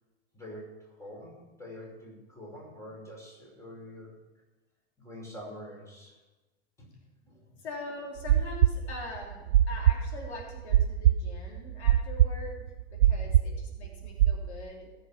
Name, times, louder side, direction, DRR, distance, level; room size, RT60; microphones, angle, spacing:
voice 1, 0.3-4.1 5.0-6.1 6.8-6.9 7.2-7.6 13.1-13.2, equal, 10° left, -3 dB, 5.7 m, -46 dB
voice 2, 7.6-14.9, left 2 dB, 85° left, -1 dB, 3.8 m, -43 dB
sound 1, 8.2-14.4, right 12 dB, 75° right, 0.7 m, -22 dB
18.5 x 7.3 x 6.0 m, 1.1 s
hypercardioid pair, 120°, 32 cm